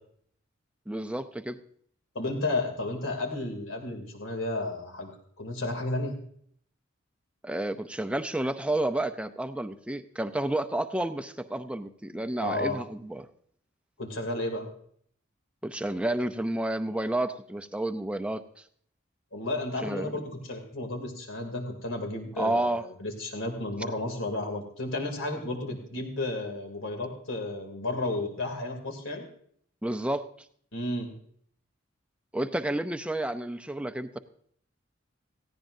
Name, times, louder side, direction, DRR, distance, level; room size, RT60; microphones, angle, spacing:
voice 1, 0.9-1.6 7.4-13.3 15.6-18.4 19.8-20.2 22.4-22.8 29.8-30.3 32.3-34.2, right 1 dB, 5° right, 9 dB, 0.5 m, -30 dB
voice 2, 2.1-5.1 5.4-6.2 12.4-12.8 14.0-14.7 19.3-29.2 30.7-31.1, left 2 dB, 75° left, 3 dB, 2.8 m, -32 dB
17.5 x 15.5 x 2.7 m, 0.63 s
head